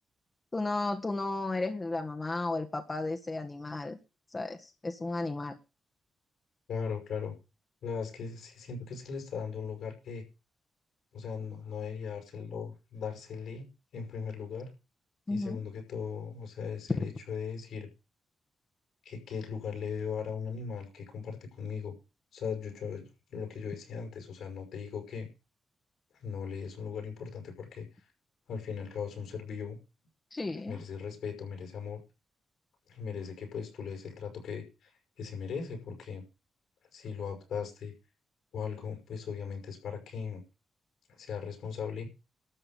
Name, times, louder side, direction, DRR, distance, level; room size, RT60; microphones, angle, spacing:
voice 1, 0.5-4.0 4.3-5.6 15.3-15.6 30.3-30.8, left 2 dB, 35° left, 5 dB, 1.7 m, -34 dB
voice 2, 6.7-7.4 7.8-10.2 11.1-13.7 13.9-14.7 15.3-17.9 19.0-21.9 22.3-25.3 26.2-28.1 28.5-29.8 30.7-32.0 32.9-34.9 35.2-36.2 36.9-37.9 38.5-40.4 41.1-42.1, left 6 dB, 80° left, 5 dB, 5.9 m, -38 dB
13.0 x 5.6 x 9.3 m, 0.31 s
supercardioid pair, 45°, 0 cm